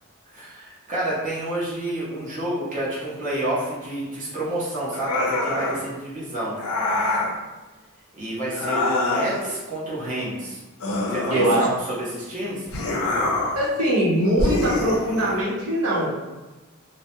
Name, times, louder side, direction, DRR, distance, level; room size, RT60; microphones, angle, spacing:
voice 1, 0.3-6.6 8.2-10.6 11.1-12.7, right 1 dB, 35° right, -8 dB, 0.7 m, -29 dB
sound 1, 4.9-5.9 6.6-7.4 8.5-9.5 10.8-11.9 12.7-13.7 14.4-15.4, left 2 dB, 80° left, 0.5 m, -25 dB
voice 2, 11.3-11.7 13.5-16.1, right 1 dB, 80° right, -7 dB, 0.8 m, -22 dB
2.2 x 2.0 x 2.8 m, 1.1 s
head